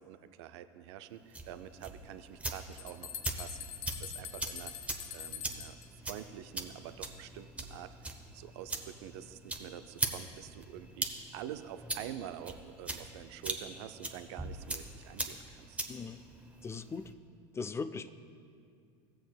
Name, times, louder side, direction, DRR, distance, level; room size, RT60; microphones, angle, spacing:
voice 1, 0.0-3.1 3.4-3.6 4.0-4.7 5.1-5.8 6.0-7.9 8.3-11.1 11.3-15.8, right 11 dB, 75° right, 11 dB, 0.4 m, -46 dB
sound 1, 1.2-17.1, right 2 dB, 10° right, 0.8 m, -41 dB
sound 2, 2.3-2.4 2.7-5.9, left 10 dB, 75° left, 0.5 m, -44 dB
voice 2, 15.9-16.2 16.6-17.1 17.5-18.1, left 4 dB, 20° left, 11 dB, 0.4 m, -39 dB
16.0 x 7.7 x 2.3 m, 2.3 s
hypercardioid pair, 95°, 14 cm